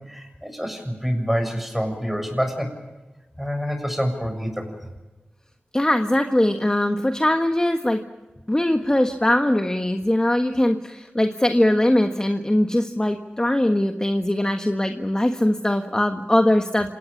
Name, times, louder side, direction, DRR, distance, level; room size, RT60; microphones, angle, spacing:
voice 1, 0.1-2.7 3.4-4.9, equal, 5° right, 6 dB, 7.1 m, -27 dB
voice 2, 5.7-8.0 8.5-16.9, left 1 dB, 20° left, 5 dB, 1.5 m, -21 dB
27.0 x 18.5 x 7.2 m, 1.1 s
cardioid pair, 50°, 4 cm